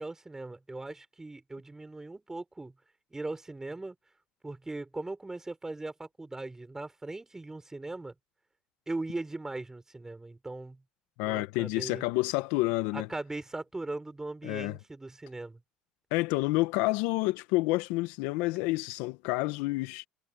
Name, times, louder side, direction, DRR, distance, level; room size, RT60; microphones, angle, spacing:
voice 1, 0.0-2.7 3.1-3.9 4.4-8.1 8.9-10.8 11.2-12.0 12.9-15.6, right 2 dB, 15° right, 6.5 m, -39 dB
voice 2, 11.2-13.1 14.4-14.8 16.1-20.1, left 21 dB, 80° left, 1.5 m, -29 dB
supercardioid pair, 75°, 3 cm